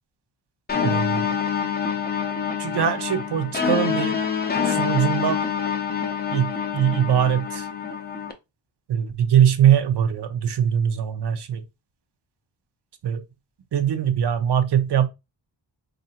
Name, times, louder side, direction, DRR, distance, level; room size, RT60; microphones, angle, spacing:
sound 1, 0.7-8.3, left 7 dB, 20° left, 0.5 m, -26 dB
voice 1, 0.8-1.3 2.6-4.2 4.6-5.4 6.3-7.7 8.9-11.6 13.0-13.2 13.7-15.1, right 9 dB, 60° right, 0.7 m, -21 dB
4.0 x 2.5 x 2.8 m
wide cardioid pair, 140°, 47 cm